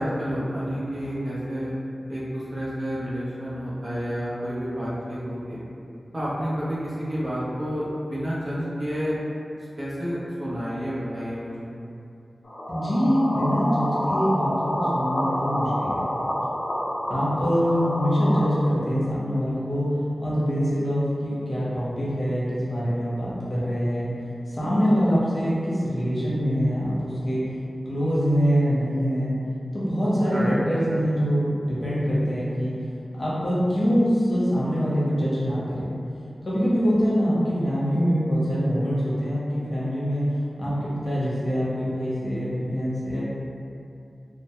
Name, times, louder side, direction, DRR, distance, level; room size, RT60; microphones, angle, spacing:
voice 1, 0.0-1.7 2.1-5.6 6.1-9.2 9.7-11.7 30.3-30.6, equal, 45° right, -9 dB, 0.6 m, -30 dB
sound 1, 12.4-18.5, equal, 75° left, 0.4 m, -28 dB
voice 2, 12.7-16.0 17.1-19.9 20.2-24.1 24.5-27.4 27.8-29.3 29.7-32.7 33.1-35.8 36.4-40.2 40.6-43.2, equal, 35° left, -9 dB, 0.7 m, -24 dB
2.1 x 2.0 x 2.8 m, 2.6 s
wide cardioid pair, 80°, 0 cm